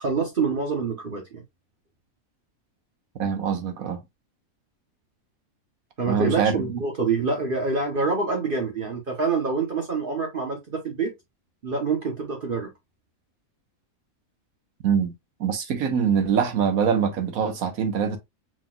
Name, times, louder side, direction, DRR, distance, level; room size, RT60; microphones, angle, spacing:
voice 1, 0.0-1.4 6.0-11.1 11.6-12.7, right 4 dB, 45° right, 1.0 m, -26 dB
voice 2, 3.2-4.0 6.1-6.5 14.8-15.1 15.4-18.2, right 7 dB, 85° right, 1.4 m, -23 dB
5.0 x 3.8 x 2.2 m
omnidirectional pair, 1.5 m